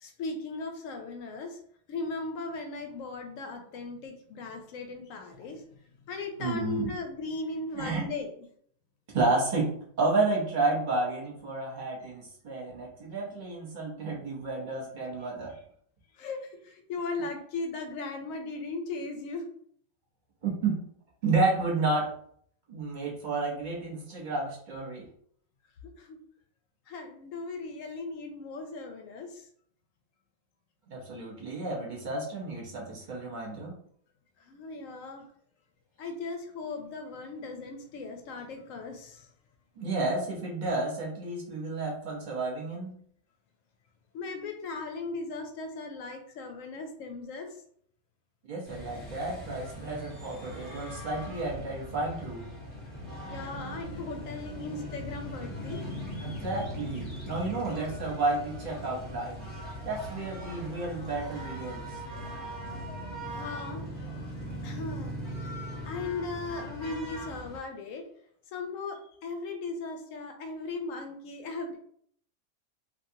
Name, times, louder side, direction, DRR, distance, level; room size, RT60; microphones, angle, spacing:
voice 1, 0.0-1.6 1.9-5.8 6.1-8.3 16.1-19.5 25.8-26.2 26.9-29.5 34.4-35.2 36.0-39.3 44.1-47.6 53.3-55.8 63.2-63.8 64.6-65.1 65.8-68.0 68.5-71.8, left 3 dB, 70° left, 4 dB, 1.0 m, -37 dB
voice 2, 6.4-6.9 7.7-8.0 9.1-9.7 10.0-15.5 20.4-20.8 21.2-22.1 22.7-25.1 30.9-33.8 39.8-42.9 48.5-52.4 56.2-59.5 59.8-61.9, right 3 dB, 40° right, -3 dB, 0.8 m, -31 dB
sound 1, 48.7-67.6, equal, 20° left, 0.9 m, -40 dB
3.0 x 2.4 x 2.7 m, 0.62 s
omnidirectional pair, 1.5 m